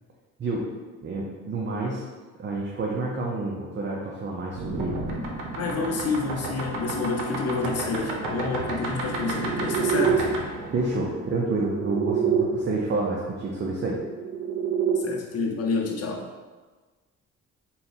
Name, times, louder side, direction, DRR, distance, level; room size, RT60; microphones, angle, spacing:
voice 1, 1.0-2.0 2.4-5.0 5.8-5.9 10.7-14.0, right 3 dB, 40° right, -2 dB, 0.6 m, -29 dB
sound 1, 4.5-12.4 13.7-15.0, right 5 dB, 85° right, 0.7 m, -29 dB
voice 2, 5.6-10.3 15.0-16.3, left 4 dB, 55° left, 1 dB, 0.8 m, -28 dB
4.0 x 2.3 x 4.0 m, 1.3 s
cardioid pair, 90°, 30 cm